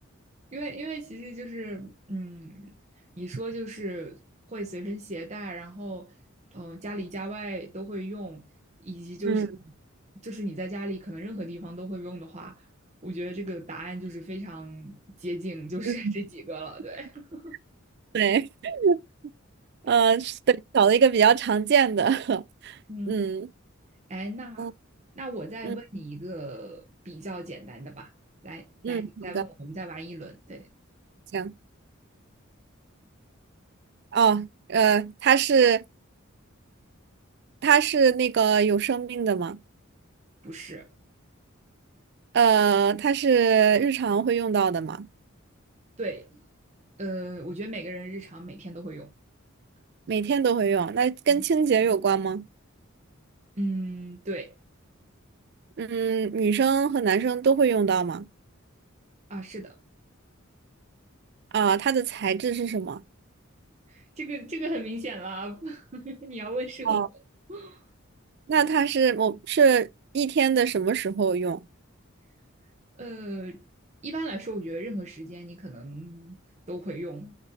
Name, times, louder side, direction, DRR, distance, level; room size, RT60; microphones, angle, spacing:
voice 1, 0.5-4.2 4.5-6.2 6.5-8.5 8.8-9.4 10.2-12.7 13.0-17.6 19.8-20.0 22.9-23.2 24.1-24.7 25.2-28.1 28.4-30.7 40.4-40.9 46.0-46.4 47.0-49.1 51.3-51.4 53.6-54.6 59.3-59.8 63.9-67.1 67.5-67.8 73.0-73.6 74.0-76.4 76.7-77.4, right 1 dB, 30° right, 0.9 m, -36 dB
voice 2, 18.1-19.0 19.9-22.7 23.1-23.5 24.6-24.7 25.6-25.8 28.8-29.4 31.3-31.5 34.1-35.8 37.6-39.6 42.3-45.1 50.1-52.4 55.8-58.3 61.5-63.0 66.9-67.1 68.5-69.9 70.1-71.6, right 6 dB, 50° right, 0.4 m, -22 dB
8.8 x 4.1 x 2.8 m
head